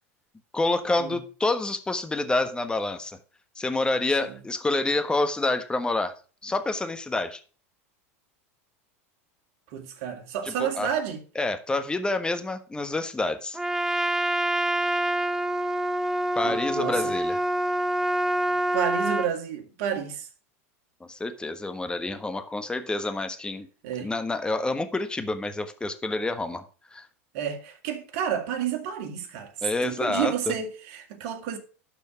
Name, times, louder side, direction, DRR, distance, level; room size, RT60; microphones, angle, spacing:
voice 1, 0.5-3.2 3.6-6.2 6.4-7.4 10.4-10.9 11.3-13.6 16.3-17.4 21.0-23.7 24.0-26.6 26.9-27.0 29.6-30.3, left 2 dB, 10° left, 1.3 m, -28 dB
voice 2, 9.7-11.2 16.4-17.1 18.7-20.3 23.8-24.1 27.3-29.5 29.8-31.6, right 9 dB, 60° right, 2.1 m, -30 dB
Trumpet, 13.5-19.3, right 1 dB, 5° right, 0.6 m, -26 dB
12.0 x 4.6 x 5.7 m
hypercardioid pair, 95°, 8 cm